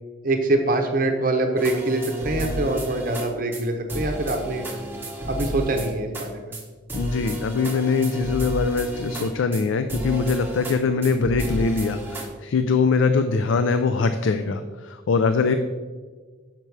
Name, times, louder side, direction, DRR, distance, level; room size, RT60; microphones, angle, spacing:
voice 1, 0.2-4.7 5.3-6.6, right 2 dB, 45° right, 4 dB, 0.7 m, -24 dB
sound 1, 1.6-3.3 3.5-3.6 3.9-6.3 6.5-6.6 6.9-9.6 9.9-10.8 11.0-12.3, right 1 dB, 10° right, 1.0 m, -31 dB
voice 2, 6.9-15.6, left 4 dB, 80° left, 9 dB, 0.4 m, -22 dB
6.8 x 5.9 x 4.6 m, 1.4 s
head